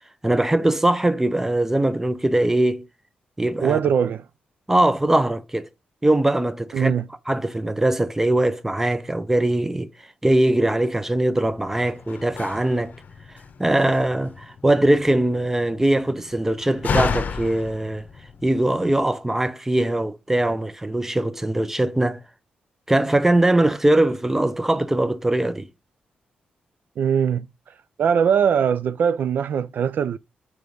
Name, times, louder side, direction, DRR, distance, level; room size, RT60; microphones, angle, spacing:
voice 1, 0.2-2.9 3.4-3.8 4.7-5.7 6.0-6.9 7.3-9.9 10.2-12.9 13.6-18.1 18.4-22.2 22.9-25.7, right 1 dB, 10° right, 0.7 m, -21 dB
voice 2, 3.6-4.2 6.7-7.0 27.0-27.5 28.0-30.2, right 7 dB, 65° right, 0.4 m, -21 dB
Slam, 11.4-19.0, left 6 dB, 55° left, 0.8 m, -33 dB
4.9 x 4.8 x 5.3 m
cardioid pair, 70°, 3 cm